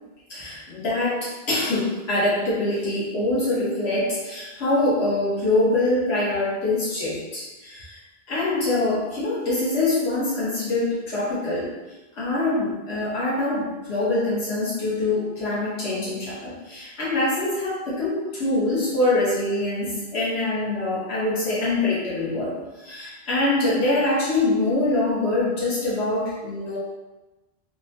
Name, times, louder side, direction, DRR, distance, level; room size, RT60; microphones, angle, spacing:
voice 1, 0.3-8.0 8.3-11.7 12.1-26.8, left 2 dB, 80° left, -8 dB, 1.1 m, -24 dB
2.8 x 2.1 x 2.7 m, 1.1 s
omnidirectional pair, 1.1 m